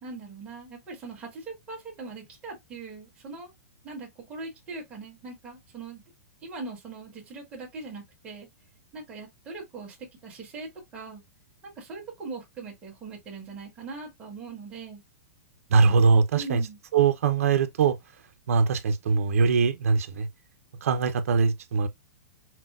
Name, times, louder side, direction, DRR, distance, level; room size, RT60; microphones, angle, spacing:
voice 1, 0.0-3.5 3.8-6.0 6.4-8.5 8.9-11.2 11.8-15.0 16.3-16.8, right 3 dB, 15° right, 1.5 m, -40 dB
voice 2, 15.7-16.6 16.9-18.0 18.5-20.3 20.8-21.9, right 5 dB, 70° right, 0.7 m, -22 dB
5.9 x 2.2 x 2.3 m
supercardioid pair, 175°, 8 cm